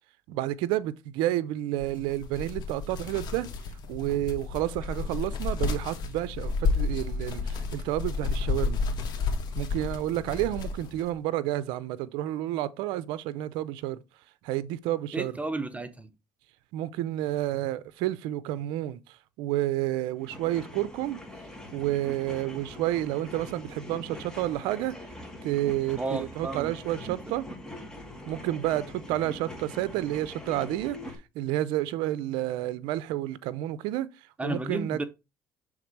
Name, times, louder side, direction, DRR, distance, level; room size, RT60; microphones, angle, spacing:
voice 1, 0.3-3.5 3.9-8.8 9.5-14.0 14.4-15.3 16.7-21.2 21.7-24.9 25.4-27.5 28.2-35.0, right 14 dB, 85° right, 0.4 m, -30 dB
sound 1, 1.8-11.1, left 4 dB, 60° left, 1.4 m, -31 dB
voice 2, 15.1-16.1 26.0-26.7 27.1-27.2 34.4-35.0, right 2 dB, 15° right, 0.7 m, -32 dB
sound 2, 20.2-31.1, left 1 dB, 10° left, 1.8 m, -43 dB
6.5 x 3.6 x 4.6 m
supercardioid pair, 90°, 8 cm